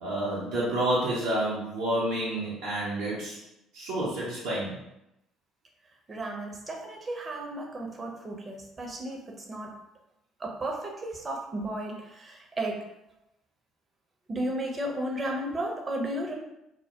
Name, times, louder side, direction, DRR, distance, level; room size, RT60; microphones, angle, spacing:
voice 1, 0.0-3.4 3.7-4.8, right 1 dB, 70° right, -8 dB, 0.6 m, -29 dB
voice 2, 6.1-9.7 10.4-12.8 14.3-16.3, right 1 dB, 30° right, 0 dB, 0.6 m, -34 dB
2.1 x 2.1 x 2.8 m, 0.86 s
hypercardioid pair, 55°, 0 cm